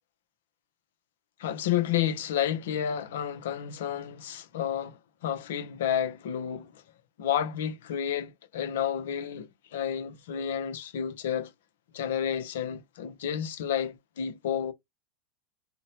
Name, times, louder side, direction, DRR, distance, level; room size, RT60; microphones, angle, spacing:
voice 1, 1.4-6.7 7.2-11.5 11.9-14.7, left 9 dB, 75° left, 0.6 m, -31 dB
3.9 x 2.1 x 2.8 m
hypercardioid pair, 100°, 0 cm